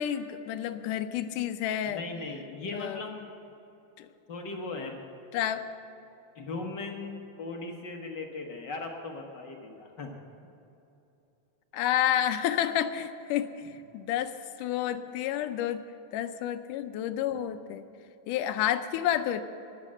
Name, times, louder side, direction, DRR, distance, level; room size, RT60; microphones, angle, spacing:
voice 1, 0.0-2.0 2.7-3.1 4.0-4.1 5.3-5.7 11.7-13.5 13.9-15.8 16.1-17.8 18.3-19.4, left 11 dB, 85° left, 10 dB, 2.3 m, -30 dB
voice 2, 1.9-3.3 4.3-5.0 6.3-10.1, left 3 dB, 55° left, 2 dB, 1.2 m, -38 dB
20.5 x 7.7 x 7.4 m, 2.9 s
omnidirectional pair, 3.6 m